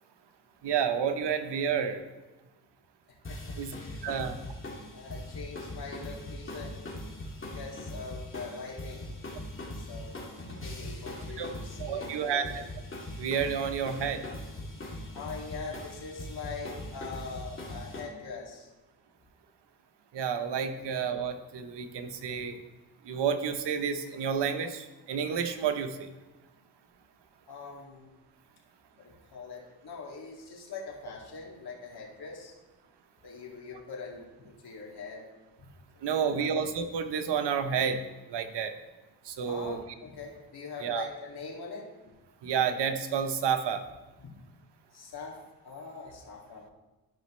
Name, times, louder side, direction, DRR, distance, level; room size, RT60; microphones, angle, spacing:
voice 1, 0.6-2.0 3.6-3.7 4.0-4.4 10.8-10.9 11.4-11.5 11.8-12.4 13.2-14.2 20.1-22.6 23.1-26.0 36.0-38.0 38.3-38.7 39.3-39.8 40.8-41.0 42.4-43.8, right 7 dB, 70° right, 7 dB, 1.0 m, -30 dB
sound 1, 3.2-18.0, left 1 dB, 30° left, 2.3 m, -41 dB
voice 2, 3.3-4.2 4.9-6.8 7.4-9.1 9.7-12.7 15.1-18.7 20.7-20.9 27.5-28.1 29.0-32.5 33.2-35.2 36.1-36.5 39.5-41.9 44.2-44.3 44.9-45.4 45.6-46.6, left 4 dB, 60° left, -2 dB, 2.4 m, -43 dB
13.0 x 5.2 x 3.2 m, 1.1 s
cardioid pair, 75°, 43 cm